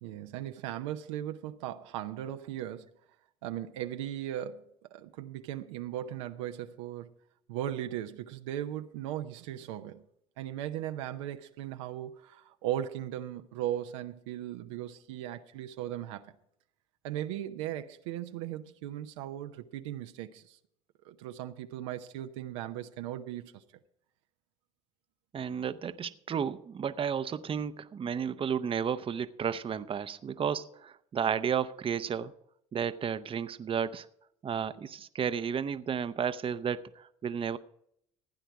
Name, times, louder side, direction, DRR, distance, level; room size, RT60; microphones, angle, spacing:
voice 1, 0.0-2.9 3.4-4.6 4.9-7.1 7.5-10.0 10.4-16.3 17.0-20.6 21.0-23.6, right 12 dB, 85° right, 0.7 m, -37 dB
voice 2, 25.3-32.3 32.7-34.1 34.4-37.6, right 7 dB, 35° right, 0.7 m, -32 dB
15.5 x 9.1 x 4.7 m
hypercardioid pair, 70°, 16 cm